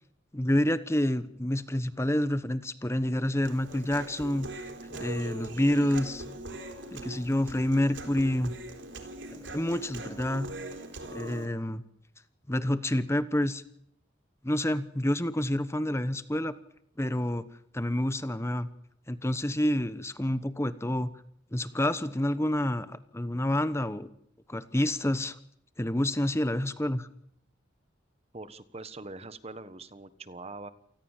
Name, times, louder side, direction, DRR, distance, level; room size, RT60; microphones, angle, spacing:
voice 1, 0.3-6.2 6.9-8.5 9.3-10.5 11.1-11.8 12.5-13.6 14.4-16.6 17.0-17.4 17.7-18.7 19.1-21.1 21.5-24.1 24.5-25.4 25.8-27.1, left 1 dB, 15° left, 13 dB, 1.1 m, -28 dB
Human voice, 3.4-11.5, right 2 dB, 75° right, 3.9 m, -41 dB
voice 2, 28.3-30.7, right 3 dB, 35° right, 13 dB, 1.3 m, -43 dB
28.5 x 19.5 x 7.4 m, 0.72 s
head